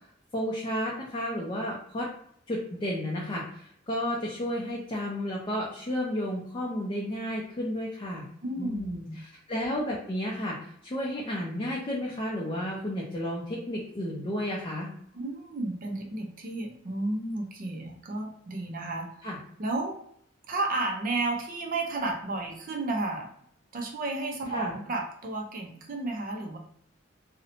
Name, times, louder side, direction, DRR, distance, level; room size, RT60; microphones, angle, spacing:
voice 1, 0.3-2.1 2.5-8.3 8.6-14.9 19.2-19.4 24.5-24.8, equal, 25° left, -3 dB, 0.4 m, -32 dB
voice 2, 8.4-9.2 15.1-19.2 19.6-20.0 20.5-23.3 23.7-26.6, right 2 dB, 45° right, 2 dB, 0.5 m, -32 dB
2.6 x 2.0 x 2.7 m, 0.67 s
head